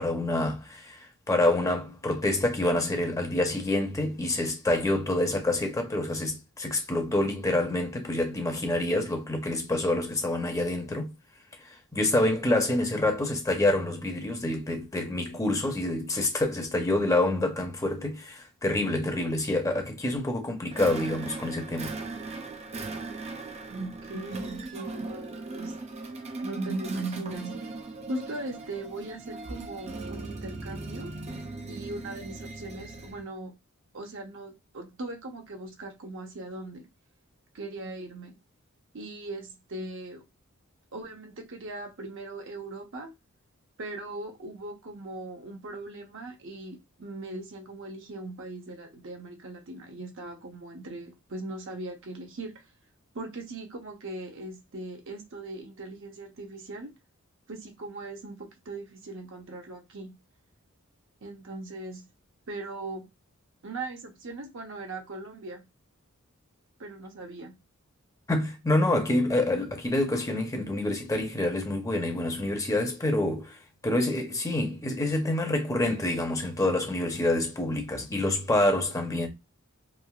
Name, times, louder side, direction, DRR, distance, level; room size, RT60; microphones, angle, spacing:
voice 1, 0.0-11.1 11.6-21.9 68.3-73.6 73.8-79.3, left 1 dB, 15° left, 0.7 m, -27 dB
sound 1, 20.7-33.3, right 3 dB, 30° right, 0.4 m, -39 dB
voice 2, 23.7-25.8 26.4-27.5 28.1-31.1 31.7-33.5 33.9-36.8 37.5-38.4 38.9-40.2 40.9-43.1 43.8-52.5 53.1-56.9 57.5-60.1 61.2-62.0 62.5-63.1 63.6-65.6 66.8-67.5, right 2 dB, 60° right, 0.8 m, -39 dB
3.2 x 2.4 x 2.3 m
head